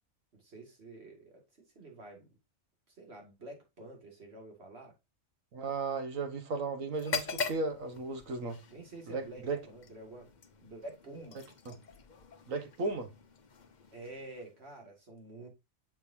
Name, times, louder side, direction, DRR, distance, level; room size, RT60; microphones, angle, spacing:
voice 1, 0.3-2.4 2.9-5.0 8.7-10.3 10.6-11.5 13.9-15.5, right 2 dB, 50° right, 2.4 m, -49 dB
voice 2, 5.5-8.6 9.1-9.6 11.7-11.8 12.5-13.1, right 3 dB, 70° right, 1.6 m, -35 dB
sound 1, 6.9-14.8, left 4 dB, 40° left, 0.8 m, -43 dB
6.6 x 6.0 x 2.7 m
omnidirectional pair, 1.4 m